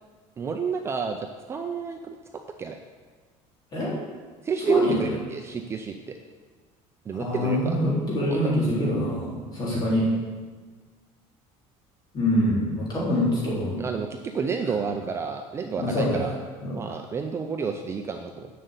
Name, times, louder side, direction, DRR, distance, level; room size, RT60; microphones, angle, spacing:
voice 1, 0.4-2.2 2.6-2.8 4.4-6.2 7.1-7.8 8.2-8.5 13.8-16.3 16.7-18.5, right 5 dB, 20° right, 5 dB, 0.4 m, -30 dB
voice 2, 4.7-5.0 7.1-10.1 12.1-13.8 15.8-16.3 16.6-16.7, left 1 dB, 30° left, -6 dB, 3.4 m, -24 dB
7.6 x 6.7 x 8.1 m, 1.4 s
cardioid pair, 175°, 13 cm